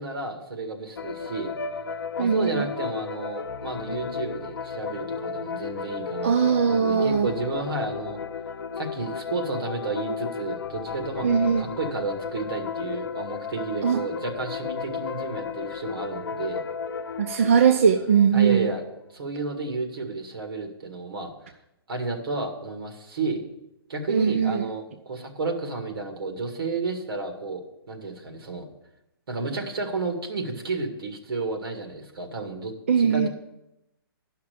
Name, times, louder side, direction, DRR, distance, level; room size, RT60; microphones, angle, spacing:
voice 1, 0.0-1.5 2.2-8.2 8.8-16.6 18.3-18.8 19.1-21.3 21.9-23.4 23.9-27.6 27.9-28.7 29.3-32.7 33.0-33.3, right 3 dB, 65° right, 4 dB, 2.0 m, -32 dB
sound 1, 1.0-19.1, left 6 dB, 60° left, 0.7 m, -34 dB
voice 2, 2.2-2.6 6.2-7.3 11.2-11.6 13.8-14.0 17.2-18.7 24.1-24.7 32.9-33.3, right 7 dB, 35° right, 6 dB, 0.4 m, -20 dB
10.0 x 5.8 x 6.7 m, 0.87 s
hypercardioid pair, 180°, 13 cm